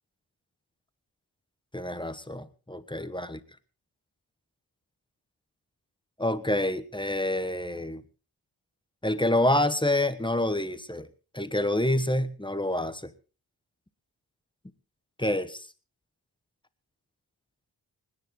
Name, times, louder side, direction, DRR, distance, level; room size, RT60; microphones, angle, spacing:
voice 1, 1.7-3.4 6.2-8.0 9.0-11.1 11.3-13.1 15.2-15.7, left 1 dB, 10° left, 12 dB, 1.3 m, -27 dB
25.5 x 10.0 x 3.8 m, 0.37 s
cardioid pair, 50°, 44 cm